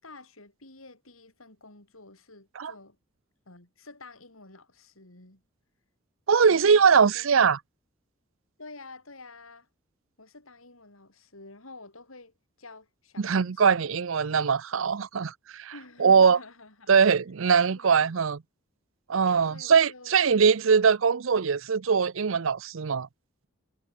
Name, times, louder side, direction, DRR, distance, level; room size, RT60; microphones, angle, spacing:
voice 1, 0.0-3.0 3.4-5.4 6.5-7.4 8.6-9.7 10.2-14.0 15.7-16.9 17.7-18.2 19.2-20.1, left 3 dB, 85° left, 6.5 m, -49 dB
voice 2, 6.3-7.6 13.2-15.7 16.0-16.4 16.9-18.4 19.1-23.1, right 6 dB, 70° right, 0.6 m, -22 dB
head